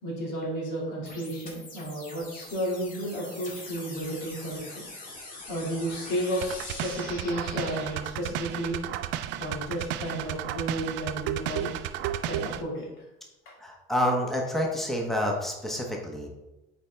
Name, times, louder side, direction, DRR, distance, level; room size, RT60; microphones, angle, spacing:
voice 1, 0.0-4.8 5.5-8.8 9.4-11.7 12.2-12.9 13.5-13.6, equal, 85° left, -3 dB, 2.3 m, -32 dB
sound 1, 1.1-8.1, left 2 dB, 45° left, 2.2 m, -43 dB
sound 2, 6.4-12.6, right 12 dB, 75° right, 0.4 m, -33 dB
voice 2, 13.6-16.3, equal, ahead, 0 dB, 1.0 m, -28 dB
8.3 x 4.4 x 3.4 m, 0.98 s
cardioid pair, 135°, 19 cm